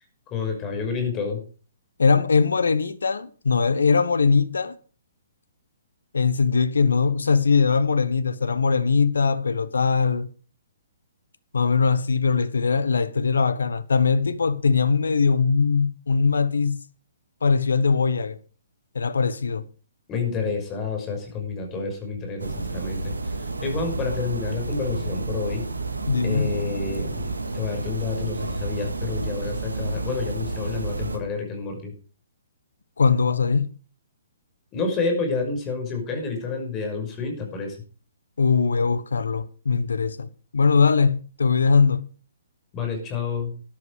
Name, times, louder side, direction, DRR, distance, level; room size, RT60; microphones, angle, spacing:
voice 1, 0.3-1.4 20.1-23.4 23.6-25.7 26.2-31.9 34.7-37.8 42.7-43.5, left 4 dB, 25° left, 5.9 m, -29 dB
voice 2, 2.0-4.8 6.1-10.3 11.5-16.8 17.4-18.4 18.9-19.6 26.1-26.5 33.0-33.7 38.4-42.1, left 5 dB, 75° left, 1.2 m, -21 dB
sound 1, 22.4-31.2, right 2 dB, 80° right, 2.2 m, -30 dB
13.5 x 11.0 x 4.9 m
figure-of-eight pair, 130°, 0 cm